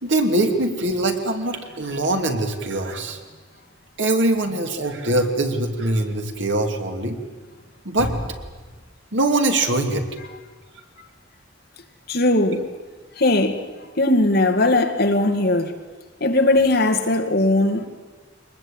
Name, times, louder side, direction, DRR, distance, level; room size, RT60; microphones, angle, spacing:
voice 1, 0.0-3.2 4.0-7.2 7.8-8.4 9.1-10.0, right 2 dB, 85° right, 2.8 m, -22 dB
voice 2, 12.1-12.7 13.2-13.6 14.0-15.7 16.2-17.9, left 2 dB, 60° left, 2.2 m, -19 dB
23.0 x 20.5 x 9.0 m
head